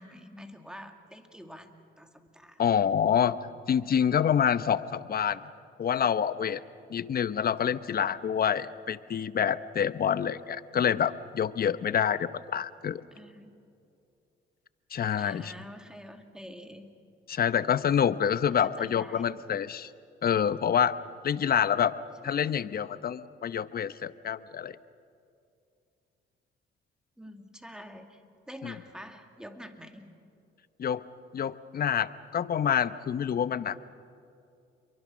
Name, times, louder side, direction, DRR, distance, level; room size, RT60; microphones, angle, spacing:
voice 1, 0.0-2.6 8.0-8.1 13.1-13.6 15.2-16.9 18.6-19.3 22.2-22.7 27.2-28.2 28.5-30.1, equal, 5° right, 5 dB, 2.5 m, -47 dB
voice 2, 2.6-3.4 3.7-5.4 5.8-6.6 6.9-13.0 14.9-15.5 17.3-19.9 20.2-21.0 21.2-21.9 22.2-24.7 28.6-28.7 30.8-31.0 31.3-33.9, left 8 dB, 50° left, 14 dB, 0.9 m, -27 dB
29.0 x 23.0 x 6.3 m, 2.6 s
cardioid pair, 90°, 20 cm